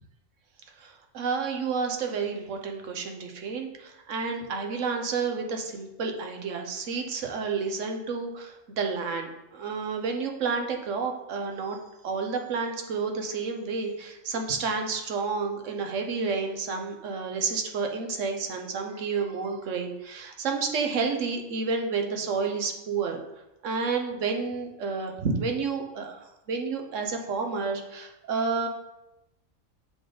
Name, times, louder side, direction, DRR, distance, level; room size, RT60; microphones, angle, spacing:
voice 1, 0.8-11.8 12.0-23.2 23.6-26.2 26.5-28.7, right 5 dB, 70° right, 4 dB, 1.2 m, -30 dB
7.6 x 4.0 x 5.0 m, 0.94 s
omnidirectional pair, 1.4 m